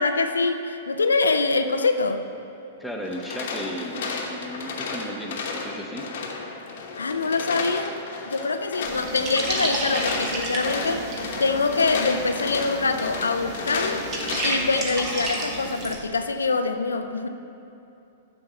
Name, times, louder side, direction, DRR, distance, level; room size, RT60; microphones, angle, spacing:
voice 1, 0.0-2.2 7.0-11.0 11.4-14.0 14.4-17.3, left 3 dB, 85° left, 7 dB, 0.4 m, -24 dB
voice 2, 2.8-6.1, equal, ahead, 0 dB, 0.9 m, -35 dB
sound 1, 3.0-14.7, left 4 dB, 60° left, 1.0 m, -33 dB
sound 2, 8.8-15.9, right 2 dB, 35° right, 1.3 m, -31 dB
6.9 x 4.5 x 6.7 m, 2.8 s
hypercardioid pair, 110°, 0 cm